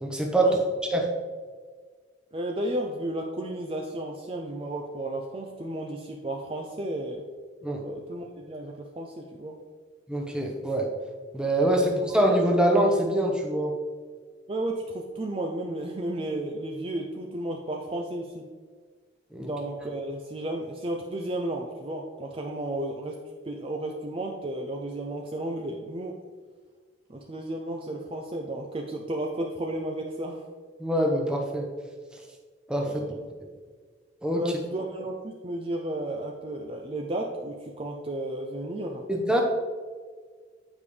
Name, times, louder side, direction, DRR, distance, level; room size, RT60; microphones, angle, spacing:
voice 1, 0.0-0.5 0.9-1.1 7.6-7.8 10.1-10.9 11.3-13.7 19.3-19.5 30.8-31.7 32.7-32.9 34.2-34.6 39.1-39.4, right 1 dB, 5° right, 1 dB, 0.8 m, -24 dB
voice 2, 2.3-7.2 7.6-9.5 11.6-12.2 14.5-18.4 19.4-23.2 23.5-26.1 27.1-30.4 32.8-33.2 34.4-39.0, right 1 dB, 30° right, 1 dB, 0.5 m, -33 dB
9.1 x 5.1 x 3.3 m, 1.5 s
head